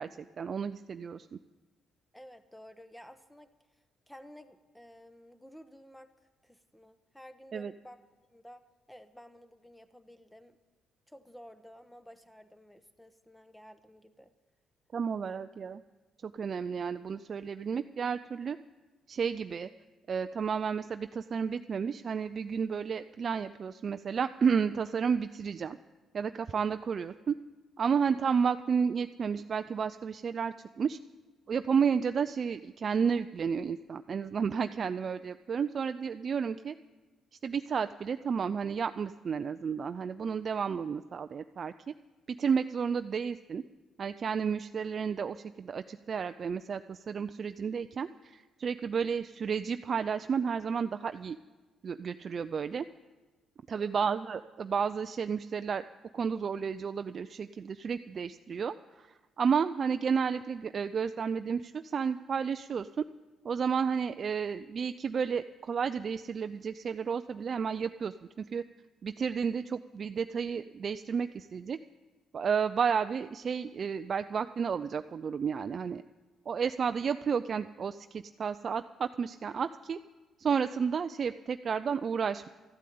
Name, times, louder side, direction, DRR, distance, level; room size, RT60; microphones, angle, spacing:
voice 1, 0.0-1.4 7.5-7.7 14.9-15.8 16.2-18.6 19.1-19.7 20.1-25.8 26.1-27.3 27.8-31.0 31.5-36.8 37.4-41.9 42.3-43.6 44.0-51.4 51.8-52.8 53.7-55.8 56.1-63.0 63.4-68.6 69.0-71.8 72.3-76.0 76.5-80.0 80.4-82.5, right 6 dB, 50° right, 10 dB, 0.4 m, -32 dB
voice 2, 2.1-8.0 8.3-8.6 8.9-10.6 11.1-14.3 15.2-15.4 53.7-54.1, equal, 5° left, 11 dB, 1.0 m, -53 dB
13.5 x 8.4 x 9.3 m, 1.2 s
cardioid pair, 90°, 0 cm